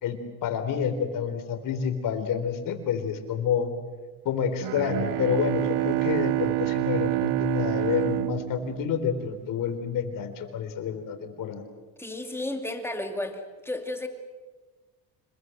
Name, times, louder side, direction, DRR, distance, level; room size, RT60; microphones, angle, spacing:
voice 1, 0.0-3.7 4.2-11.6, left 7 dB, 50° left, 7 dB, 3.9 m, -28 dB
Bowed string instrument, 4.6-9.5, right 20 dB, 65° right, 0.7 m, -28 dB
voice 2, 12.0-14.1, left 1 dB, 5° left, 5 dB, 2.5 m, -33 dB
26.5 x 21.5 x 7.9 m, 1.3 s
cardioid pair, 135°, 41 cm